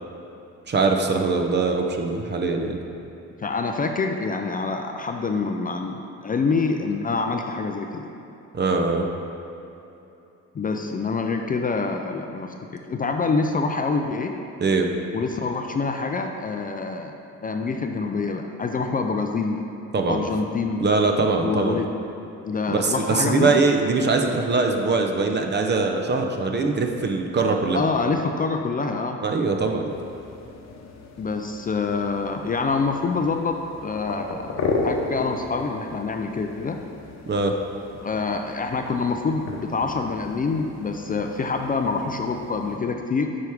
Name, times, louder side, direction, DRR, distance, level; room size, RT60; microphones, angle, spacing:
voice 1, 0.7-2.8 8.5-9.1 14.6-14.9 19.9-20.3 20.8-21.8 22.7-27.8 29.2-29.9 37.3-37.6, right 3 dB, 35° right, 3 dB, 0.7 m, -22 dB
voice 2, 3.4-8.1 10.5-14.3 15.1-17.1 17.4-19.6 20.0-20.8 21.4-21.9 22.4-23.6 27.7-29.2 31.2-36.8 38.0-43.3, left 4 dB, 30° left, 4 dB, 0.4 m, -26 dB
sound 1, 29.9-42.8, left 3 dB, 60° left, 0.9 m, -35 dB
8.8 x 4.7 x 3.5 m, 2.9 s
cardioid pair, 90°, 30 cm